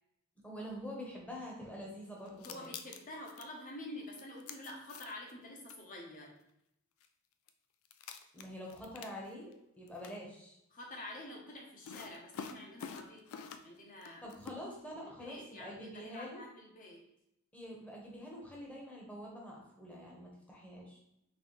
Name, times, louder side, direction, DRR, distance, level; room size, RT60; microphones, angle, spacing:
voice 1, 0.4-2.7 8.3-10.6 14.2-16.4 17.5-21.0, equal, 5° left, -3 dB, 1.0 m, -46 dB
sound 1, 2.3-3.5 4.1-5.3 5.7-5.8 7.0-7.1 7.5-7.6 7.9-9.5 9.9-10.2 11.8-13.8 14.0-14.6, left 6 dB, 70° left, 0.4 m, -47 dB
voice 2, 2.4-6.3 10.7-14.4 15.0-17.0, left 1 dB, 40° left, -1 dB, 1.0 m, -48 dB
4.1 x 3.4 x 3.2 m, 0.79 s
head